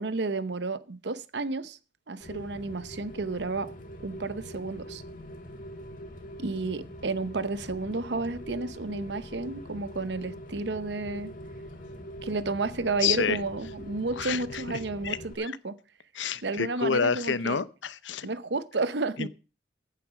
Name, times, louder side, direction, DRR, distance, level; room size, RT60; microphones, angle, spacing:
voice 1, 0.0-1.8 2.1-3.7 4.0-5.0 6.4-11.3 12.2-15.8 16.4-17.6 18.2-19.3, right 3 dB, 65° right, 0.8 m, -31 dB
Rain, 2.2-15.3, equal, 45° left, 2.2 m, -43 dB
voice 2, 13.0-13.4 14.2-14.4 15.0-15.2 16.2-18.3 19.2-19.3, left 6 dB, 85° left, 0.8 m, -28 dB
15.0 x 9.1 x 5.0 m
head